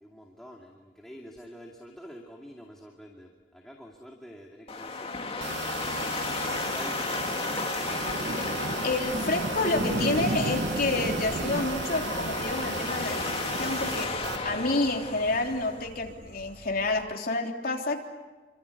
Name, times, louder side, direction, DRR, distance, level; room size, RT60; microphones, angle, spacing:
voice 1, 0.0-7.6, equal, ahead, 0 dB, 2.4 m, -48 dB
sound 1, 4.7-15.9, left 4 dB, 35° left, 2.2 m, -34 dB
sound 2, 5.4-14.4, right 5 dB, 75° right, 0.9 m, -37 dB
sound 3, 6.7-17.1, right 2 dB, 50° right, 1.0 m, -36 dB
voice 2, 8.8-14.1 14.4-18.0, left 2 dB, 55° left, 1 dB, 3.5 m, -29 dB
28.5 x 25.0 x 8.4 m, 1.3 s
head